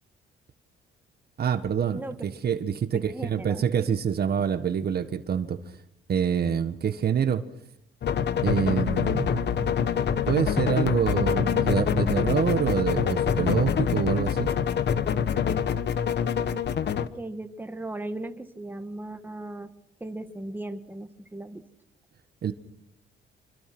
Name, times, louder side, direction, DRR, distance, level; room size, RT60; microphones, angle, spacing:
voice 1, 1.4-5.6 6.1-7.5 8.4-9.9 10.3-14.5 22.4-22.5, right 7 dB, 50° right, 10 dB, 1.6 m, -26 dB
voice 2, 2.9-3.6 17.0-19.7 20.0-21.6, right 2 dB, 10° right, 7 dB, 1.7 m, -37 dB
sound 1, 8.0-17.1, left 8 dB, 60° left, 1.3 m, -25 dB
26.5 x 25.0 x 6.2 m, 0.78 s
cardioid pair, 90°, 20 cm